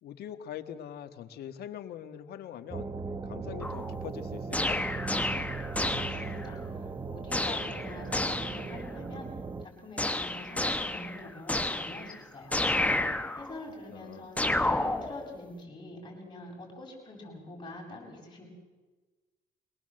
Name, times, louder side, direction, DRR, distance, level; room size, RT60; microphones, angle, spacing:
voice 1, 0.0-2.9 3.2-4.8 13.9-14.3, left 10 dB, 70° left, 10 dB, 1.6 m, -42 dB
sound 1, 2.7-9.7, right 4 dB, 20° right, 0.9 m, -38 dB
sound 2, 3.6-4.1 4.5-6.5 7.3-8.8 10.0-12.2 12.5-13.6 14.4-15.4, left 2 dB, 10° left, 1.2 m, -31 dB
voice 2, 5.4-9.3 9.6-12.6 13.3-18.4, left 2 dB, 25° left, 0 dB, 7.9 m, -45 dB
24.0 x 18.5 x 7.8 m, 1.3 s
cardioid pair, 110°, 17 cm